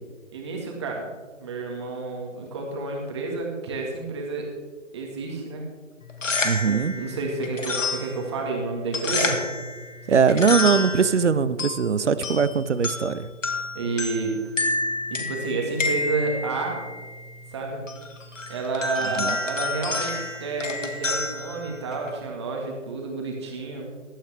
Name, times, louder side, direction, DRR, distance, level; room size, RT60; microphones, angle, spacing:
voice 1, 0.3-4.5 4.9-5.6 6.7-9.4 10.1-10.5 13.7-14.4 15.1-16.9 17.5-17.8 18.5-23.9, right 3 dB, 20° right, 0 dB, 1.9 m, -30 dB
sound 1, 6.0-22.3, left 2 dB, 70° left, 2.0 m, -30 dB
voice 2, 6.4-6.9 10.1-13.3 19.2-19.4, right 6 dB, 65° right, 15 dB, 0.8 m, -21 dB
16.5 x 11.5 x 3.5 m, 1.3 s
figure-of-eight pair, 160°, 39 cm